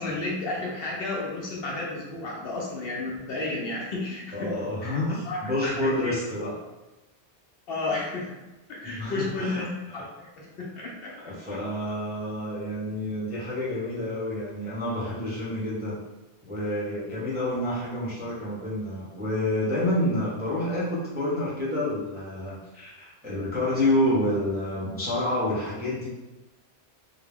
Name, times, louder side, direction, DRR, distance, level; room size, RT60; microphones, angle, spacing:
voice 1, 0.0-4.5 4.8-5.0 5.3-6.2 7.7-8.3 8.7-11.1, left 2 dB, 65° left, -2 dB, 0.7 m, -32 dB
voice 2, 4.3-6.6 8.8-10.0 11.2-16.0 16.4-26.1, left 1 dB, 10° right, -9 dB, 0.5 m, -28 dB
2.2 x 2.1 x 3.3 m, 1.1 s
omnidirectional pair, 1.1 m